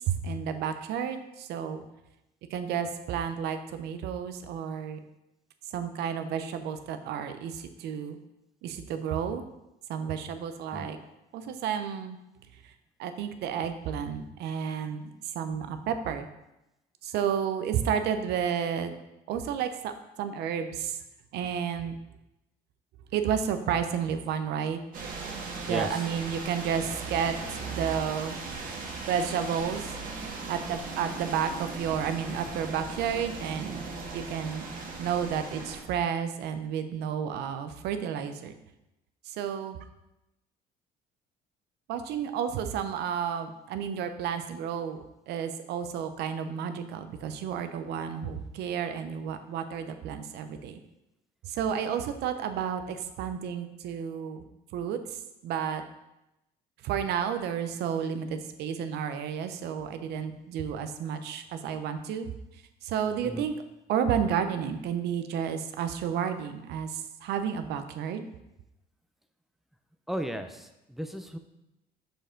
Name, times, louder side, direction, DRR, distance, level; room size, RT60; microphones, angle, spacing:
voice 1, 0.1-1.8 2.5-5.0 5.7-8.2 8.6-9.4 9.9-11.0 11.3-12.2 12.6-12.7 13.0-16.3 17.0-19.0 19.3-19.9 20.2-21.0 21.3-22.0 23.1-24.8 25.6-28.3 29.1-29.9 30.5-33.8 34.1-34.6 35.0-38.5 39.2-39.8 41.9-50.8 51.4-54.4 54.7-55.8 56.8-62.3 62.8-63.6 63.9-68.3, right 8 dB, 80° right, 9 dB, 0.7 m, -31 dB
sound 1, 24.9-35.8, right 3 dB, 55° right, 1.4 m, -38 dB
voice 2, 25.7-26.1 63.2-63.4 70.1-71.4, equal, ahead, 7 dB, 0.5 m, -35 dB
6.4 x 5.2 x 3.8 m, 0.91 s
cardioid pair, 110°, 17 cm